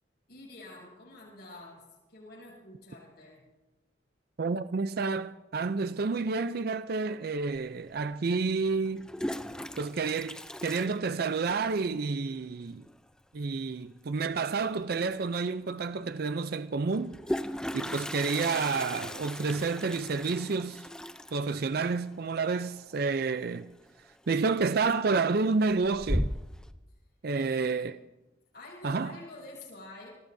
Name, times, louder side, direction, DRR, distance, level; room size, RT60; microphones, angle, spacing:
voice 1, 0.3-3.5 27.3-27.9 28.5-30.1, left 2 dB, 55° left, 7.6 m, -48 dB
voice 2, 4.4-9.1 9.8-12.9 13.3-17.2 17.7-20.8 21.3-23.7 24.3-26.3 27.2-28.0 28.8-29.1, right 4 dB, 55° right, 0.5 m, -29 dB
Toilet flush, 7.6-7.7 8.8-11.7 11.9-12.0 12.3-12.4 12.7-13.1 14.8-14.9 15.2-15.3 16.9-23.6 23.9-24.3 24.7-25.3 25.7-26.7, equal, 5° left, 0.5 m, -37 dB
26.0 x 20.5 x 2.7 m
head